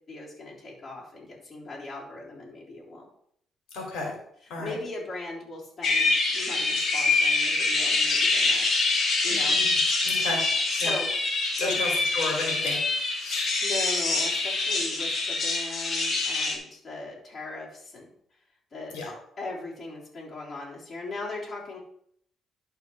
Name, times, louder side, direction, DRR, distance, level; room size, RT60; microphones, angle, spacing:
voice 1, 0.1-3.1 4.4-8.7 9.2-9.6 10.8-11.1 11.6-11.8 13.6-18.1 18.7-19.0 19.4-21.8, left 2 dB, 40° left, -5 dB, 3.6 m, -38 dB
voice 2, 3.7-4.1 4.5-4.7 9.3-9.7 10.0-10.4 10.8-10.9 11.6-13.5 18.9-19.1, left 3 dB, 90° left, 0 dB, 2.8 m, -33 dB
sound 1, 5.8-16.6, left 3 dB, 60° left, 2.6 m, -25 dB
11.5 x 4.6 x 4.7 m, 0.67 s
cardioid pair, 90°, 0 cm